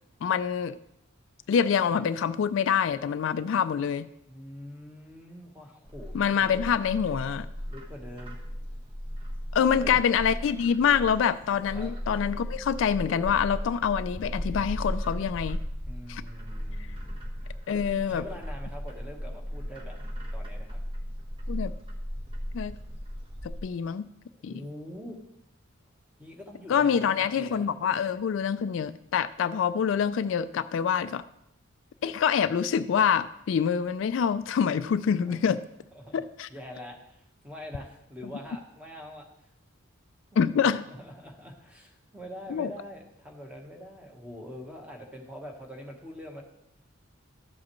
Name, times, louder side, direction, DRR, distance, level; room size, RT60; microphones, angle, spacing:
voice 1, 0.2-0.8 1.5-4.1 6.1-7.5 9.5-15.6 16.1-16.2 17.7-18.2 21.5-21.7 22.5-22.8 23.4-24.1 24.4-24.5 26.7-31.2 32.0-35.6 36.1-36.5 40.4-40.8 42.5-42.7, left 7 dB, 65° left, 13 dB, 0.3 m, -26 dB
voice 2, 4.3-6.5 7.7-8.4 9.5-10.0 11.7-11.9 15.9-17.3 17.7-17.8 18.1-20.0 20.3-20.8 24.5-25.2 26.2-27.7 35.2-35.5 35.9-36.2 36.5-39.3 40.6-46.4, equal, 5° right, 1 dB, 1.2 m, -44 dB
Bird, 5.9-23.6, equal, 25° right, 1.2 m, -36 dB
12.5 x 7.4 x 3.1 m, 0.82 s
head